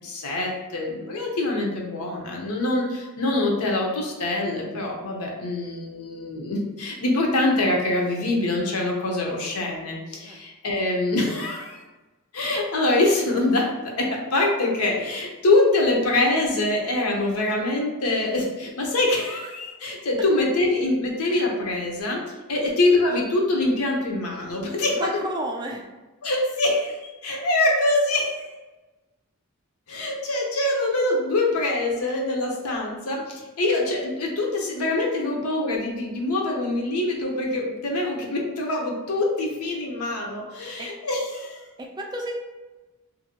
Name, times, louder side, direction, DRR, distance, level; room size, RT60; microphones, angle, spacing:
voice 1, 0.0-11.8 12.3-22.2 22.5-25.2 26.2-28.5 29.9-41.6, left 2 dB, 85° left, -1 dB, 0.7 m, -24 dB
voice 2, 24.9-25.8 40.8-40.9 41.8-42.3, right 1 dB, 20° right, 0 dB, 0.3 m, -31 dB
2.6 x 2.5 x 2.8 m, 1.2 s
head